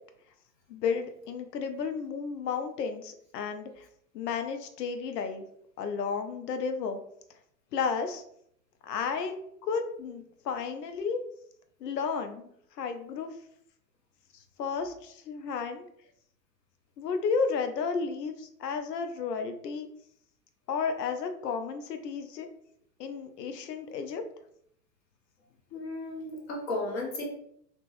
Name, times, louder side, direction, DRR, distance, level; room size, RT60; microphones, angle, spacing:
voice 1, 0.7-3.9 4.1-5.4 5.8-7.0 7.7-8.2 8.8-9.4 9.6-11.2 11.8-12.5 12.8-13.3 14.3-15.8 17.0-19.9 20.7-22.5 23.0-24.2, left 5 dB, 75° left, 7 dB, 0.6 m, -32 dB
voice 2, 25.7-27.3, left 2 dB, 40° left, -2 dB, 0.8 m, -34 dB
2.9 x 2.0 x 2.9 m, 0.69 s
hypercardioid pair, 115°, 49 cm